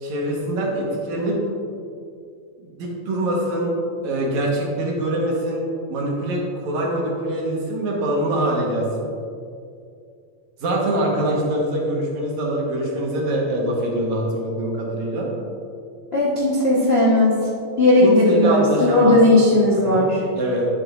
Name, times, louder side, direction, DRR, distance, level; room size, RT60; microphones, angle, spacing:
voice 1, 0.0-1.4 2.6-3.7 4.0-5.6 5.9-8.9 10.6-15.3 18.0-19.2 19.7-20.1 20.4-20.7, right 1 dB, 75° right, -2 dB, 2.7 m, -24 dB
voice 2, 16.1-17.4 17.8-20.2, left 1 dB, 55° left, -7 dB, 0.6 m, -16 dB
11.5 x 7.5 x 2.5 m, 2.4 s
omnidirectional pair, 3.3 m